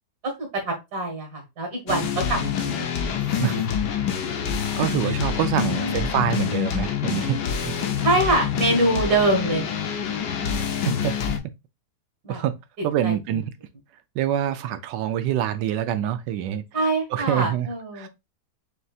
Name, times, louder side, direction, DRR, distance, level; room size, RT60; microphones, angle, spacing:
voice 1, 0.2-2.9 3.2-3.5 5.0-5.2 5.6-6.0 8.0-9.7 10.4-10.8 12.2-12.4 13.0-13.4 16.7-18.1, right 2 dB, 65° right, 2.1 m, -25 dB
sound 1, 1.9-11.4, left 8 dB, 75° left, 1.3 m, -26 dB
voice 2, 4.8-8.1 10.8-11.1 12.3-12.5 12.8-13.5 14.2-16.6 17.1-17.7 18.0-18.1, right 11 dB, 85° right, 1.2 m, -26 dB
6.5 x 2.7 x 2.3 m
omnidirectional pair, 1.9 m